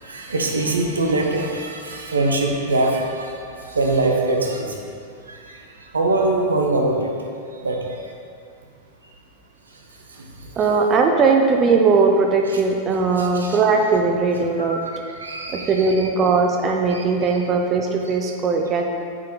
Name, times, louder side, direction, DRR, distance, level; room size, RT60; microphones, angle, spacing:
voice 1, 0.0-8.1 9.0-9.2 9.7-10.7 12.5-12.6 13.1-13.6 14.6-16.1 16.9-17.5 18.0-18.3, right 2 dB, 75° right, 1 dB, 0.7 m, -24 dB
voice 2, 10.6-14.8 15.5-18.8, right 4 dB, 30° right, 2 dB, 0.5 m, -19 dB
7.2 x 4.4 x 3.6 m, 2.2 s
figure-of-eight pair, 90°, 0 cm